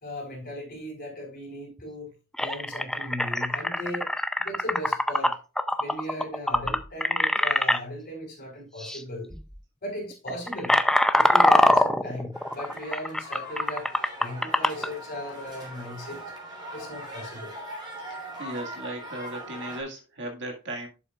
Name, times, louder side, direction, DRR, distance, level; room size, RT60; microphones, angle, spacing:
voice 1, 0.0-2.1 2.4-4.1 4.4-5.4 5.8-9.4 9.8-10.8 11.1-13.9 14.2-16.2 16.7-17.5, left 1 dB, 45° left, 3.9 m, -37 dB
sound 1, 1.8-1.9 2.3-7.8 8.8-9.0 9.3-9.6 10.1-14.9, left 1 dB, 5° left, 0.4 m, -23 dB
sound 2, 12.3-19.8, right 1 dB, 20° right, 3.6 m, -40 dB
voice 2, 18.1-20.9, right 1 dB, 55° right, 1.8 m, -37 dB
11.5 x 7.1 x 2.4 m
head